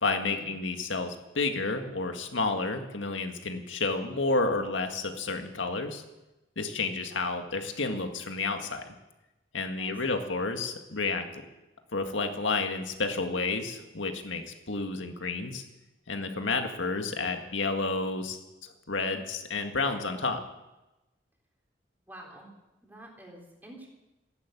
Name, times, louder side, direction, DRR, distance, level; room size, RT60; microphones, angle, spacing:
voice 1, 0.0-6.0 6.6-8.8 9.5-11.3 11.9-15.6 16.1-20.4, left 3 dB, 85° left, 5 dB, 1.9 m, -30 dB
voice 2, 9.8-10.3 22.0-22.5 22.8-23.9, right 1 dB, 10° right, -1 dB, 3.4 m, -48 dB
15.0 x 11.0 x 8.3 m, 1.0 s
head